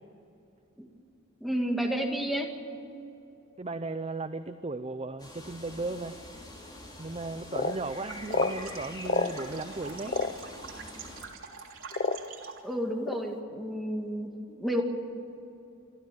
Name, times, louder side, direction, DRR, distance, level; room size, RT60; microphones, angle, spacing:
voice 1, 1.4-2.5 12.6-14.8, equal, ahead, 1 dB, 2.1 m, -31 dB
voice 2, 3.6-6.5 7.0-10.2, right 3 dB, 30° right, 10 dB, 0.6 m, -36 dB
sound 1, 5.2-11.2, left 1 dB, 20° left, 3.8 m, -45 dB
sound 2, 6.8-6.9 7.5-7.8 8.3-8.5 9.1-9.3 10.1-10.3 11.2-11.3 11.9-12.4 13.0-13.2, left 3 dB, 40° left, 0.7 m, -28 dB
sound 3, 8.0-12.7, right 5 dB, 75° right, 3.1 m, -45 dB
27.0 x 13.0 x 9.4 m, 2.8 s
head